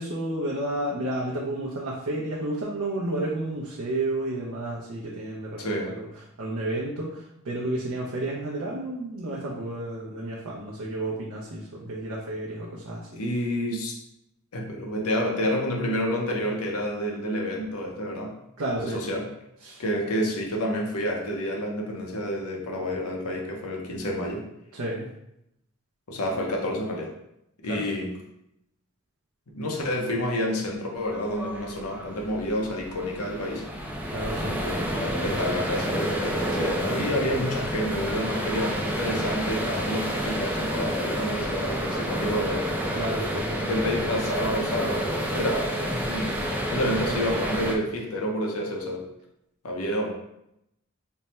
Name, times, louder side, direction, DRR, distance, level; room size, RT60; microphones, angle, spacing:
voice 1, 0.0-6.1 6.4-13.1 18.6-19.0 19.6-19.8 24.7-25.0 27.7-27.8 34.1-34.6 42.9-44.1, right 1 dB, 70° right, -5 dB, 0.6 m, -31 dB
voice 2, 5.6-5.9 13.1-14.0 14.5-18.3 18.8-19.3 19.8-24.4 26.1-27.1 27.6-28.1 29.5-33.6 34.4-42.7 43.7-45.0 45.3-49.1 49.6-50.1, equal, 75° left, 0 dB, 0.8 m, -29 dB
sound 1, 31.1-47.7, equal, 5° right, 0.4 m, -29 dB
3.4 x 2.1 x 4.2 m, 0.81 s
head